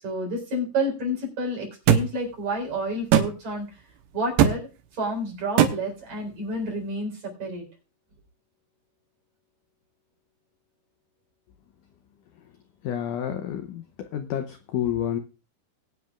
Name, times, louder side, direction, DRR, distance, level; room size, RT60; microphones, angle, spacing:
voice 1, 0.0-3.7 4.1-7.7, right 1 dB, 45° right, 0 dB, 5.4 m, -30 dB
sound 1, 1.9-2.1 3.1-3.3 4.4-4.6 5.6-5.7, right 9 dB, 80° right, 3.0 m, -17 dB
voice 2, 12.8-13.8 14.1-15.2, left 10 dB, 85° left, 8 dB, 1.8 m, -29 dB
21.0 x 9.5 x 2.4 m, 0.32 s
omnidirectional pair, 4.7 m